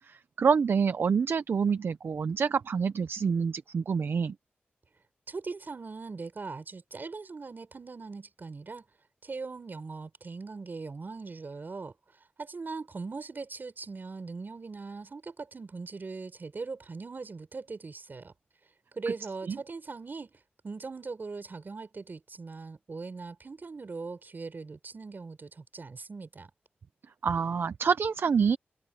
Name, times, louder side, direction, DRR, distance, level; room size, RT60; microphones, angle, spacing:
voice 1, 0.1-4.3 19.5-19.6 27.2-28.6, right 6 dB, 75° right, 0.6 m, -27 dB
voice 2, 5.3-8.9 9.2-11.9 12.4-18.3 18.9-26.5, right 4 dB, 55° right, 5.9 m, -40 dB
cardioid pair, 55°, 4 cm